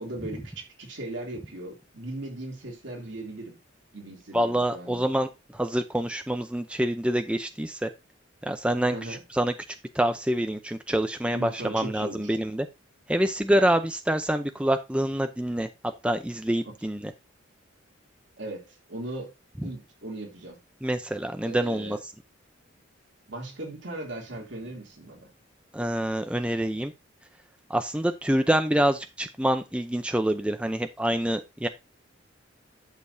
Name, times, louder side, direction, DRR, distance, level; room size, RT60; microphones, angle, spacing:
voice 1, 0.0-3.6 3.9-5.1 8.9-9.2 11.3-12.4 16.6-16.7 18.4-19.3 19.6-20.6 21.4-22.0 23.3-25.3, right 1 dB, 65° right, 2.9 m, -38 dB
voice 2, 4.3-7.9 8.4-9.5 9.9-12.7 13.1-15.7 16.0-17.1 19.6-19.7 20.8-22.0 25.7-26.9 27.7-31.7, right 1 dB, 5° right, 0.6 m, -26 dB
11.5 x 6.8 x 2.7 m
head